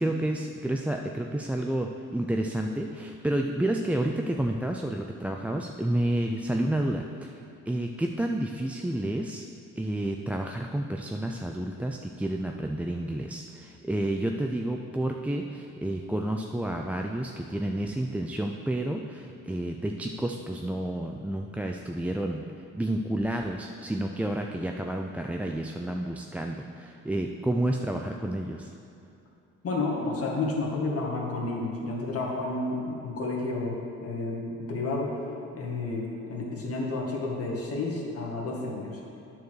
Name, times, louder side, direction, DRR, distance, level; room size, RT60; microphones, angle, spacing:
voice 1, 0.0-9.5 9.8-22.4 22.7-28.7, right 1 dB, 5° right, 2 dB, 0.3 m, -30 dB
voice 2, 29.6-35.2 35.5-39.0, left 2 dB, 50° left, -2 dB, 1.9 m, -31 dB
9.3 x 4.7 x 6.4 m, 2.7 s
cardioid pair, 90°, 30 cm